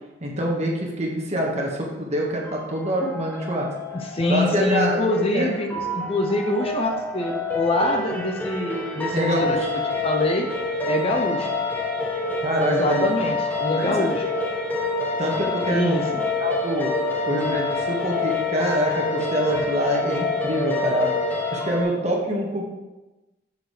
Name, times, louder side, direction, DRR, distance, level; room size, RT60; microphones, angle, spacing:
voice 1, 0.2-3.7 4.3-5.0 5.3-5.5 9.1-9.5 12.4-13.1 13.7-14.1 15.2-16.1 16.4-16.9 17.2-21.1 21.5-22.6, right 1 dB, 35° right, -2 dB, 1.7 m, -25 dB
sound 1, 2.5-21.8, left 3 dB, 10° left, 1.1 m, -27 dB
voice 2, 3.9-10.5 10.9-11.6 12.7-14.2 15.7-16.2, left 1 dB, 30° left, 3 dB, 0.7 m, -25 dB
10.0 x 7.2 x 3.3 m, 1.1 s
head